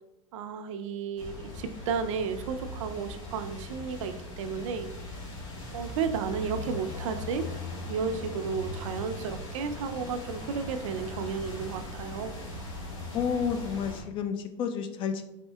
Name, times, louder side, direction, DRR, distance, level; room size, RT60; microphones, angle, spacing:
voice 1, 0.3-4.9 5.7-7.5 7.9-12.4, right 6 dB, 80° right, 8 dB, 0.4 m, -33 dB
sound 1, 1.2-14.0, left 1 dB, 80° left, 1.2 m, -39 dB
voice 2, 13.1-15.3, left 7 dB, 35° left, 8 dB, 0.4 m, -30 dB
4.3 x 3.5 x 2.2 m, 0.90 s
supercardioid pair, 140°, 16 cm